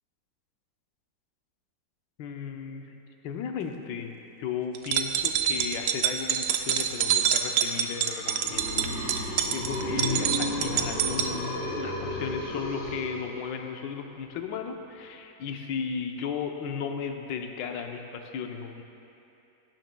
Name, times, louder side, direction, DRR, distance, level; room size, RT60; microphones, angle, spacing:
voice 1, 2.2-2.9 3.2-18.8, left 6 dB, 80° left, 4 dB, 1.4 m, -35 dB
sound 1, 4.8-11.3, right 9 dB, 75° right, 1.1 m, -26 dB
sound 2, 7.8-13.7, left 1 dB, 40° left, 2.5 m, -33 dB
17.5 x 12.0 x 2.2 m, 2.8 s
omnidirectional pair, 1.9 m